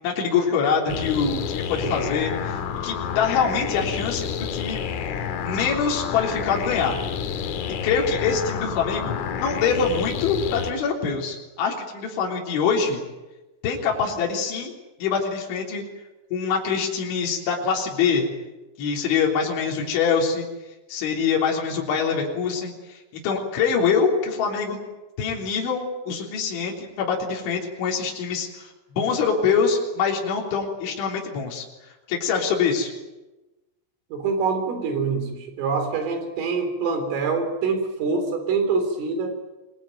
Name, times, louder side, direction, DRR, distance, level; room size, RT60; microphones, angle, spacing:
voice 1, 0.0-4.2 4.5-4.8 5.4-7.0 7.8-13.0 13.6-14.7 15.0-15.8 16.3-18.3 18.8-20.5 20.9-24.8 25.2-32.9, left 6 dB, 65° left, -1 dB, 5.7 m, -24 dB
sound 1, 0.9-10.7, left 7 dB, 85° left, 4.6 m, -29 dB
voice 2, 34.1-39.4, right 4 dB, 75° right, 7 dB, 6.2 m, -25 dB
27.0 x 21.0 x 9.3 m, 1.1 s
omnidirectional pair, 5.8 m